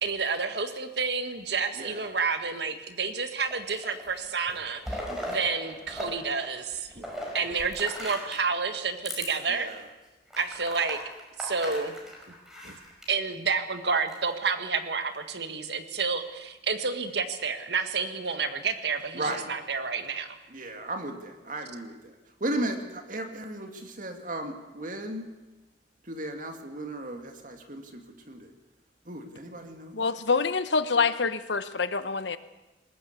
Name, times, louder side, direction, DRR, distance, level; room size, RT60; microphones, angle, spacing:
voice 1, 0.0-6.9 7.3-9.7 10.4-11.0 11.4-11.9 12.6-12.8 13.1-20.4, right 5 dB, 70° right, 8 dB, 1.7 m, -30 dB
sound 1, 3.5-4.1 4.5-6.1 6.4-8.5 9.0-9.3 9.7-9.8 10.3-13.1 13.9-14.5, equal, 5° right, 5.1 m, -38 dB
voice 2, 7.0-7.3 9.5-9.8 19.2-19.5 20.5-21.9 22.4-25.3 26.1-28.0 28.3-28.5 29.1-29.9, right 1 dB, 45° right, 5 dB, 2.4 m, -35 dB
voice 3, 29.9-32.4, left 4 dB, 80° left, 12 dB, 1.1 m, -26 dB
20.5 x 18.5 x 8.3 m, 1.1 s
head